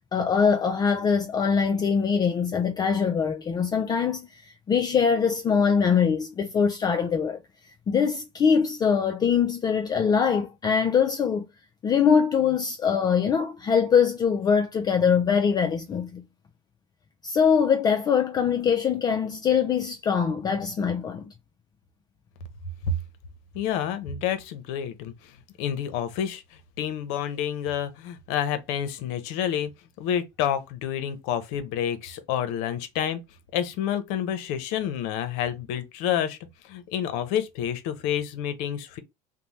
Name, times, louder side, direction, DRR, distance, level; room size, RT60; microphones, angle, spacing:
voice 1, 0.1-7.4 7.9-11.5 11.8-16.2 17.2-21.3, left 6 dB, 25° left, 0.3 m, -23 dB
voice 2, 23.5-26.4 26.8-29.7 30.0-33.2 33.5-36.4 36.6-39.0, left 9 dB, 70° left, 0.6 m, -29 dB
2.6 x 2.0 x 3.0 m
supercardioid pair, 110°, 16 cm